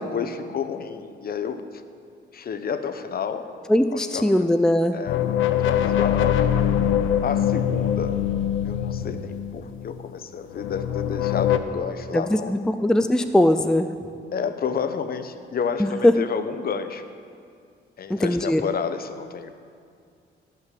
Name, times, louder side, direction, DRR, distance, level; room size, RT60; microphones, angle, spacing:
voice 1, 0.0-1.6 2.3-3.5 3.9-4.5 4.9-5.2 5.6-6.5 7.2-8.2 8.6-12.5 14.3-17.0 18.0-19.5, left 6 dB, 50° left, 9 dB, 0.9 m, -30 dB
voice 2, 3.7-5.0 12.1-13.9 15.8-16.1 18.1-18.6, left 1 dB, 5° left, 9 dB, 0.5 m, -20 dB
sound 1, 5.1-10.0 10.5-11.6, left 10 dB, 80° left, 0.7 m, -23 dB
17.5 x 5.9 x 7.7 m, 2.2 s
cardioid pair, 90°, 20 cm